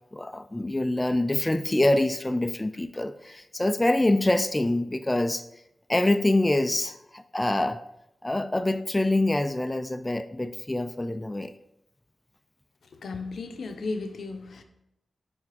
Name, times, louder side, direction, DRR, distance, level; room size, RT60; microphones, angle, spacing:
voice 1, 0.1-5.4 5.9-7.8 8.2-11.5, left 1 dB, 20° left, 9 dB, 0.4 m, -25 dB
voice 2, 12.9-14.6, left 3 dB, 85° left, 7 dB, 0.6 m, -35 dB
6.6 x 3.5 x 5.0 m, 0.82 s
cardioid pair, 70°, 0 cm